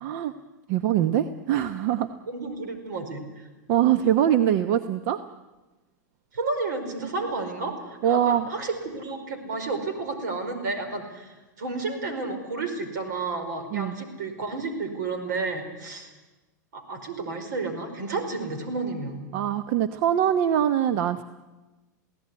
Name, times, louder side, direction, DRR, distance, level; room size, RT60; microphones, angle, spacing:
voice 1, 0.0-0.3 0.7-2.1 3.7-5.2 8.0-8.5 13.7-14.0 19.3-21.2, right 10 dB, 55° right, 11 dB, 1.0 m, -23 dB
voice 2, 2.3-3.5 6.3-16.1 16.7-19.2, right 3 dB, 75° right, 7 dB, 5.0 m, -31 dB
21.5 x 17.0 x 9.8 m, 1.1 s
hypercardioid pair, 115°, 10 cm